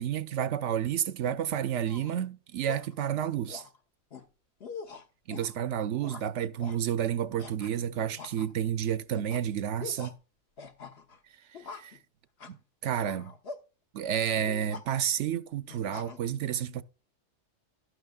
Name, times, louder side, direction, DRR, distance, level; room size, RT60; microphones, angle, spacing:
voice 1, 0.0-3.6 5.3-10.2 11.7-12.0 12.5-12.6 12.8-13.3 13.9-16.8, right 9 dB, 70° right, 0.9 m, -30 dB
sound 1, 1.8-2.2 2.7-2.9 3.5-3.8 4.1-4.2 4.6-5.5 6.0-6.3 6.6-6.8 7.4-7.8 8.2-8.7 9.1-9.4 9.8-10.1 10.6-11.2 11.5-12.0 12.4-12.6 13.0-13.6 14.4-14.8 15.7-16.2, left 4 dB, 55° left, 1.2 m, -44 dB
11.5 x 11.0 x 2.3 m
omnidirectional pair, 1.3 m